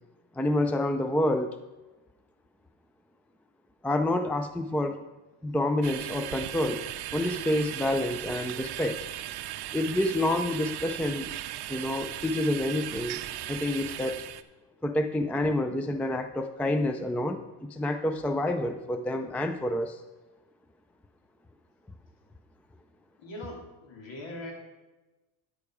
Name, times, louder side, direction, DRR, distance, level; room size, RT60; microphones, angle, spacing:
voice 1, 0.3-1.6 3.8-5.0 5.4-6.8 7.1-9.0 9.7-11.3 11.7-13.2 13.5-14.2 14.8-17.4 17.7-20.0, left 1 dB, 5° left, 8 dB, 0.4 m, -28 dB
sound 1, 5.8-14.4, right 13 dB, 50° right, 0.6 m, -37 dB
voice 2, 23.2-24.5, left 1 dB, 60° left, 0 dB, 3.4 m, -41 dB
9.7 x 8.2 x 4.9 m, 1.1 s
supercardioid pair, 95°, 50 cm